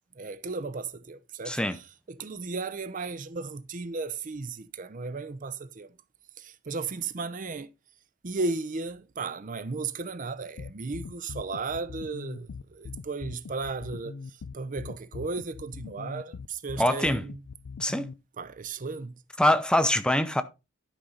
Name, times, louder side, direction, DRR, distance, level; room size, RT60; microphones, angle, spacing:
voice 1, 0.2-1.6 2.1-5.9 6.4-7.7 8.2-17.4 18.4-19.2, right 3 dB, 40° right, 0.6 m, -35 dB
voice 2, 1.5-1.8 16.8-17.3 17.8-18.1 19.4-20.4, left 1 dB, 5° left, 0.6 m, -24 dB
sound 1, 10.6-18.1, left 5 dB, 80° left, 0.5 m, -41 dB
11.5 x 5.5 x 3.9 m
head